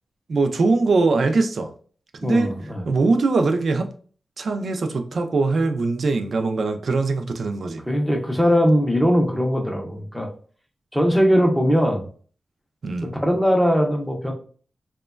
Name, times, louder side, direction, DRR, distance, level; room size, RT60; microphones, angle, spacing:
voice 1, 0.3-1.7 2.2-2.6 2.9-3.9 4.4-7.8 12.8-13.1, right 3 dB, 60° right, 6 dB, 0.3 m, -21 dB
voice 2, 2.2-2.8 7.9-10.3 10.9-12.0 13.2-14.3, equal, ahead, 1 dB, 0.5 m, -20 dB
2.9 x 2.1 x 2.3 m, 0.43 s
wide cardioid pair, 180°, 0 cm